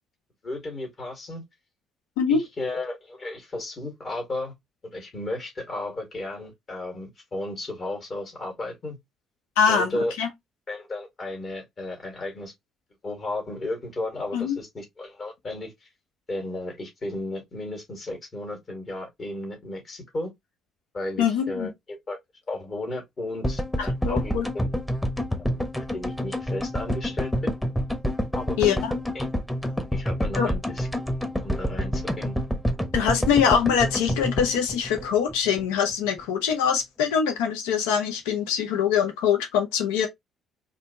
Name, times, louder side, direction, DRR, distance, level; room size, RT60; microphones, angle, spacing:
voice 1, 0.4-1.4 2.3-4.5 4.9-9.0 9.7-10.1 10.7-12.5 13.0-15.7 16.3-20.3 20.9-22.2 22.5-24.7 25.4-25.6 25.9-27.5 28.3-28.8 29.1-29.2 29.9-30.9 31.4-32.4 32.8-33.1, left 2 dB, 40° left, 2.2 m, -34 dB
voice 2, 9.6-9.9 10.2-10.3 14.3-14.6 21.2-21.7 24.1-24.5 28.6-28.9 30.3-30.5 32.9-40.1, left 7 dB, 70° left, 0.7 m, -23 dB
sound 1, 23.4-35.7 35.9-36.0 36.2-36.3, equal, 10° left, 1.1 m, -28 dB
4.2 x 2.7 x 2.9 m
figure-of-eight pair, 45°, 0 cm